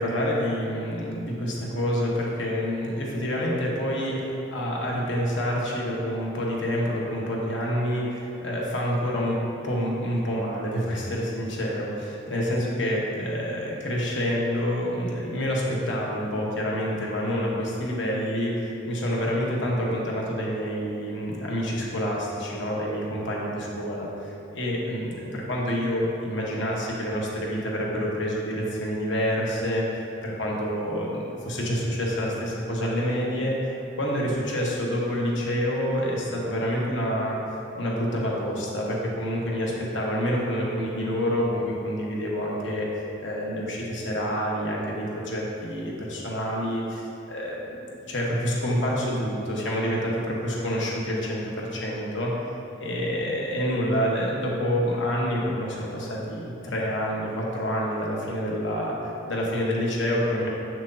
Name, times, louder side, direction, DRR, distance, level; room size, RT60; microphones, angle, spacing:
voice 1, 0.0-4.2 4.5-29.9 30.2-33.6 34.0-37.4 37.7-42.9 43.2-52.3 52.8-60.5, equal, 75° left, -3 dB, 1.2 m, -27 dB
7.5 x 6.0 x 2.7 m, 2.8 s
head